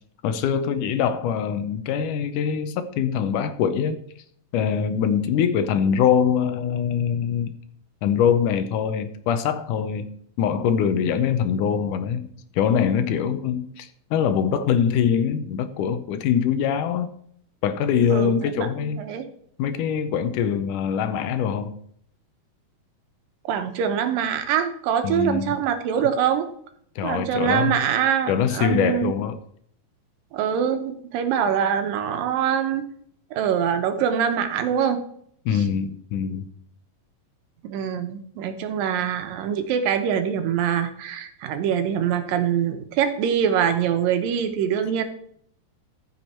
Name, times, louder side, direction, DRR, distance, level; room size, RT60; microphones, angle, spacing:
voice 1, 0.2-4.0 4.5-7.5 8.0-10.1 10.4-12.3 12.5-17.1 17.6-19.1 19.6-21.7 25.0-25.6 27.0-27.8 28.3-29.4 35.5-36.5, left 7 dB, 75° left, 2.2 m, -23 dB
voice 2, 18.1-19.3 23.5-26.5 27.0-29.1 30.3-32.9 33.3-35.0 37.6-45.0, right 8 dB, 90° right, 2.7 m, -24 dB
14.0 x 6.3 x 4.3 m
omnidirectional pair, 3.9 m